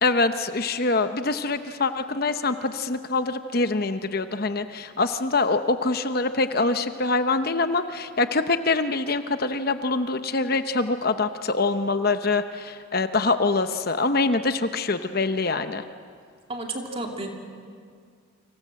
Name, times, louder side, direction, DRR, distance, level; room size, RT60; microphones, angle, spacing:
voice 1, 0.0-15.8, left 3 dB, 45° left, 9 dB, 0.9 m, -24 dB
voice 2, 16.5-17.3, right 2 dB, 25° right, 2 dB, 2.6 m, -32 dB
30.0 x 25.5 x 7.6 m, 2.1 s
head